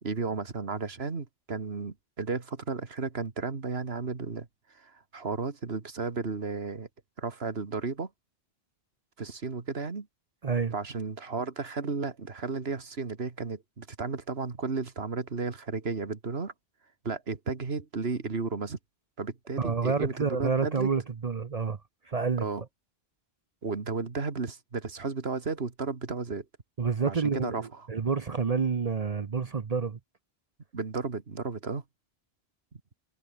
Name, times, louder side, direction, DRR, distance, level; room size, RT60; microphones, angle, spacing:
voice 1, 0.0-4.5 4.7-6.9 7.2-8.1 9.2-10.1 10.7-16.5 17.0-18.8 19.2-20.9 22.4-22.6 23.6-26.5 27.1-27.9 30.7-31.8, right 4 dB, 80° right, 2.2 m, -33 dB
voice 2, 10.4-10.7 19.6-21.8 22.1-22.4 26.8-30.0, right 5 dB, 40° right, 0.8 m, -28 dB
omnidirectional pair, 1.0 m